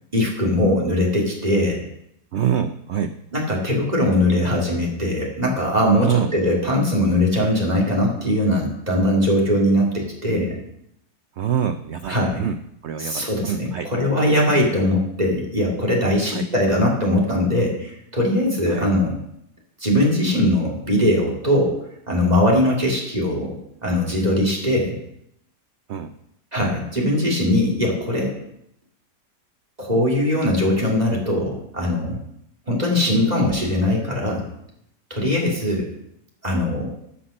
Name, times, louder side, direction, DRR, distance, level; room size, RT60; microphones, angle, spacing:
voice 1, 0.1-1.8 3.3-10.6 12.1-12.4 13.0-19.2 19.8-21.8 22.1-23.5 23.8-25.0 26.5-28.3 29.8-32.2 32.7-34.4 35.1-35.9 36.4-36.9, left 1 dB, 25° right, -1 dB, 2.9 m, -20 dB
voice 2, 2.3-3.1 5.9-6.3 11.4-12.6 12.8-13.9 16.3-16.5 18.7-18.9 25.9-26.1, right 9 dB, 70° right, 9 dB, 0.6 m, -25 dB
14.0 x 5.8 x 6.5 m, 0.77 s
omnidirectional pair, 1.8 m